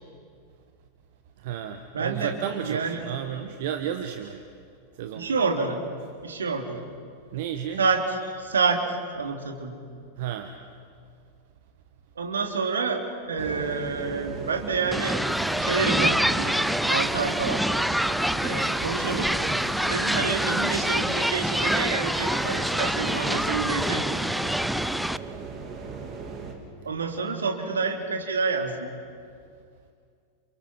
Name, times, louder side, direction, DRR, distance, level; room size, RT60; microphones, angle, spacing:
voice 1, 1.4-4.4 5.0-5.3 7.3-7.8 10.2-10.5, right 9 dB, 50° right, 6 dB, 1.3 m, -32 dB
voice 2, 1.9-3.2 5.1-5.8 6.2-6.8 7.8-8.8 9.1-9.7 12.2-13.0 13.3-15.2 15.6-16.5 16.8-17.6 18.4-19.3 19.9-24.2 26.8-28.9, right 4 dB, 70° right, 3 dB, 2.9 m, -28 dB
sound 1, 13.4-26.5, right 5 dB, 30° right, 3.4 m, -37 dB
sound 2, 14.9-25.2, equal, ahead, 0.5 m, -26 dB
29.5 x 28.5 x 4.5 m, 2.3 s
figure-of-eight pair, 90°, 0 cm